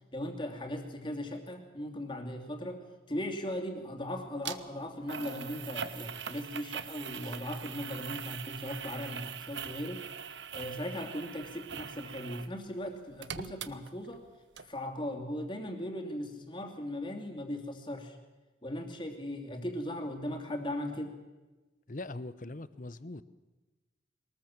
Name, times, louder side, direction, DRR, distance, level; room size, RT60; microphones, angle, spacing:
voice 1, 0.1-10.1 10.5-14.2 14.6-18.2 18.6-21.2, left 1 dB, 25° left, 2.7 m, -38 dB
sound 1, 4.4-4.6 5.1-12.5 12.8-14.3 14.6-14.7, right 7 dB, 75° right, 1.0 m, -42 dB
voice 2, 21.9-23.2, left 2 dB, 45° left, 0.8 m, -41 dB
23.0 x 19.0 x 7.5 m
head